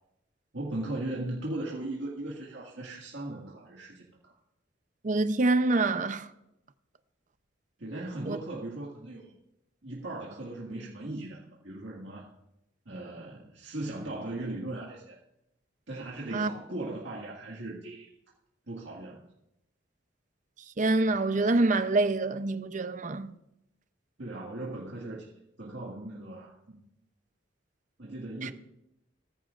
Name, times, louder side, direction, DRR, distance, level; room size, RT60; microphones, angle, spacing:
voice 1, 0.5-4.3 7.8-9.3 9.8-12.3 12.9-15.2 15.9-18.1 18.7-19.2 24.2-25.3 25.6-26.8 28.0-28.5, right 2 dB, 80° right, 1.9 m, -38 dB
voice 2, 5.0-6.3 8.3-8.4 16.3-16.5 20.8-23.3 28.4-28.5, right 2 dB, 40° right, 0.6 m, -26 dB
18.5 x 14.5 x 2.5 m
head